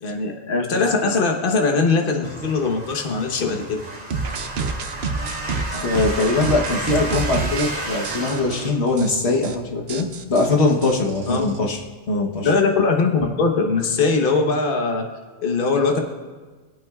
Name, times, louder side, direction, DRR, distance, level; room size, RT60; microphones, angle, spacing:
voice 1, 0.0-3.8 11.3-11.5 12.4-15.0 15.4-16.0, left 4 dB, 55° left, 2 dB, 1.3 m, -21 dB
sound 1, 2.2-8.7, right 2 dB, 45° right, 2.8 m, -32 dB
sound 2, 4.1-7.7 8.0-8.6 9.0-9.1 9.3-9.6 9.9-11.6, right 4 dB, 70° right, 1.0 m, -28 dB
voice 2, 5.8-11.8 12.1-12.5, left 3 dB, 75° left, 1 dB, 1.4 m, -21 dB
25.0 x 8.5 x 2.4 m, 1.4 s
omnidirectional pair, 1.1 m